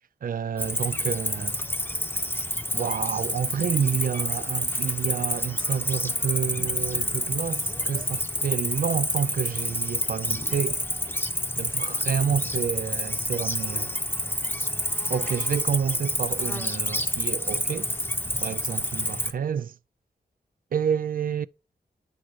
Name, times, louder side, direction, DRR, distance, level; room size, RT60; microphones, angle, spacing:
voice 1, 0.2-1.6 2.7-10.8 11.6-14.0 15.1-17.9 18.4-19.8 20.7-21.5, right 7 dB, 60° right, 0.4 m, -29 dB
Cricket, 0.6-19.3, left 1 dB, 10° left, 0.8 m, -28 dB
9.9 x 3.9 x 4.7 m
cardioid pair, 70°, 17 cm